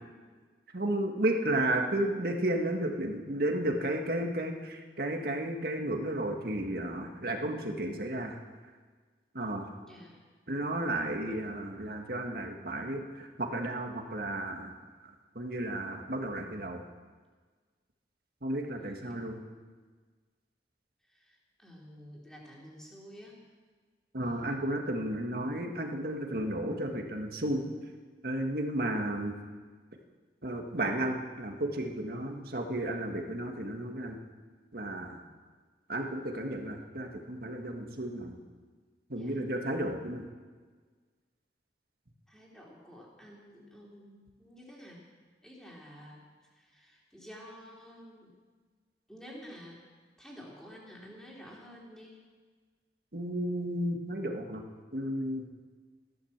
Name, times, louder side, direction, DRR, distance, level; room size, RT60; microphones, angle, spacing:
voice 1, 0.7-8.4 9.3-9.7 10.5-14.7 15.4-16.8 18.4-19.4 24.1-27.7 28.2-29.3 30.4-34.2 34.7-35.2 35.9-38.4 39.1-40.3 53.1-54.6 54.9-55.4, right 1 dB, 55° right, 3 dB, 1.8 m, -33 dB
voice 2, 9.8-10.2 21.1-23.4 39.1-39.5 42.3-45.0 45.4-48.3 49.1-49.8 50.2-52.2, equal, 5° left, -3 dB, 3.6 m, -50 dB
15.5 x 12.5 x 7.4 m, 1.5 s
head